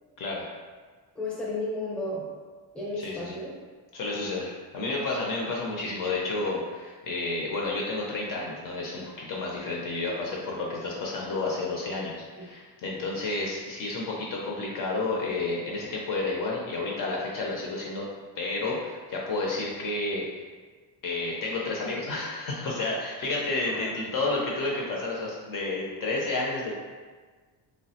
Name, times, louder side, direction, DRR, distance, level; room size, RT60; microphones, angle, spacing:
voice 1, 1.1-2.2 2.7-3.5 12.4-12.5 23.7-23.9, left 2 dB, 5° left, -6 dB, 0.6 m, -33 dB
voice 2, 3.0-3.4 3.9-18.1 18.4-20.2 21.0-26.7, left 2 dB, 50° left, -3 dB, 0.5 m, -31 dB
3.3 x 2.0 x 2.7 m, 1.4 s
cardioid pair, 135°, 44 cm